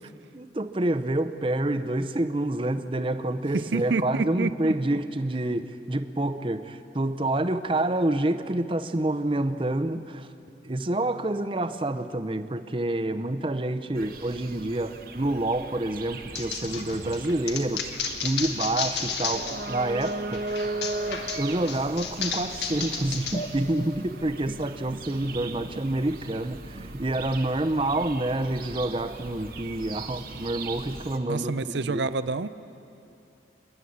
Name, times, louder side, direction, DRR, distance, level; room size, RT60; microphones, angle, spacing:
voice 1, 0.3-10.3 10.6-18.0 18.2-20.4 21.4-32.1, right 1 dB, 30° right, 11 dB, 0.7 m, -28 dB
voice 2, 3.5-4.5 4.9-5.0 31.3-32.5, right 3 dB, 80° right, 13 dB, 0.6 m, -28 dB
sound 1, 13.9-31.2, right 3 dB, 55° right, 1.1 m, -38 dB
Skittering Dog, 16.3-19.7 20.0-23.4, left 6 dB, 70° left, 1.7 m, -33 dB
sound 2, 23.3-26.3, right 2 dB, 20° left, 0.9 m, -43 dB
28.5 x 11.0 x 8.6 m, 2.7 s
head